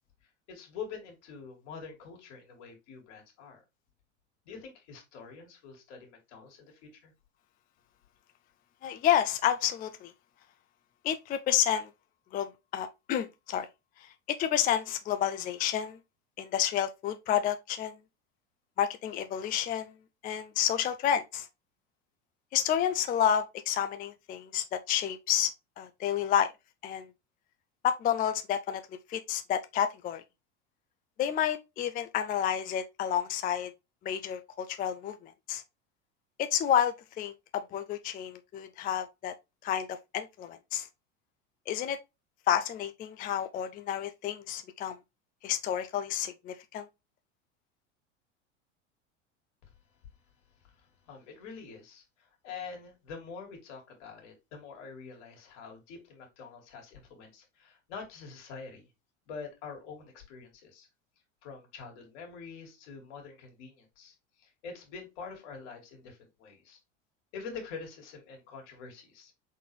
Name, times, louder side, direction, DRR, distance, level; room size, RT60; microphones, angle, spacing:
voice 1, 0.5-3.6 4.5-7.1 50.6-58.9 59.3-60.9 61.4-66.8 67.3-69.3, left 5 dB, 65° left, 2.3 m, -46 dB
voice 2, 8.8-10.1 11.0-11.9 12.3-13.7 14.0-16.0 16.4-17.9 18.8-19.9 20.2-21.5 22.5-25.5 25.8-26.5 26.8-27.1 27.8-30.2 31.2-33.7 34.0-35.6 36.4-39.3 39.6-40.9 41.7-42.0 42.5-45.0 45.4-46.9, left 10 dB, 25° left, 0.4 m, -30 dB
4.1 x 4.0 x 3.1 m
hypercardioid pair, 85°, 38 cm